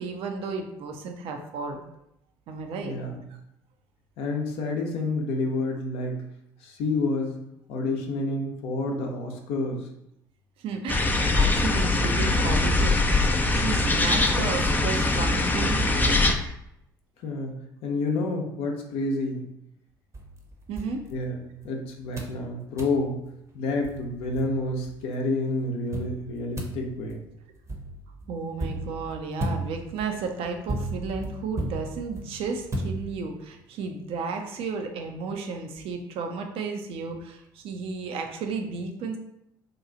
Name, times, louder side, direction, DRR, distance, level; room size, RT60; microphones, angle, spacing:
voice 1, 0.0-1.8 2.5-3.0 10.6-16.3 20.7-21.0 28.3-39.2, right 4 dB, 55° right, 4 dB, 0.5 m, -33 dB
voice 2, 2.8-3.3 4.2-6.2 6.6-9.9 17.2-19.5 21.1-23.2 23.5-27.2, left 2 dB, 65° left, 1 dB, 0.7 m, -29 dB
sound 1, 10.9-16.3, left 2 dB, 15° left, 0.4 m, -22 dB
sound 2, 20.1-21.7 22.2-22.4 22.8-23.0 23.5-23.6 23.8-24.9 25.9-33.5, right 1 dB, 25° right, 0.8 m, -35 dB
3.0 x 2.3 x 3.8 m, 0.79 s
hypercardioid pair, 55°, 11 cm